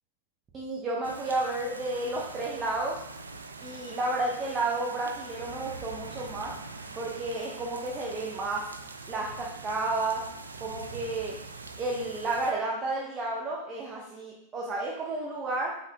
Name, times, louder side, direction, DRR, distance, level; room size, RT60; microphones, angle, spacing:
voice 1, 0.5-3.0 3.6-6.5 7.0-8.7 9.1-10.2 10.6-11.3 11.8-15.7, right 2 dB, 25° right, -3 dB, 1.0 m, -31 dB
sound 1, 1.0-12.5, right 3 dB, 75° right, 0.5 m, -43 dB
5.8 x 5.8 x 3.0 m, 0.79 s
figure-of-eight pair, 90°, 0 cm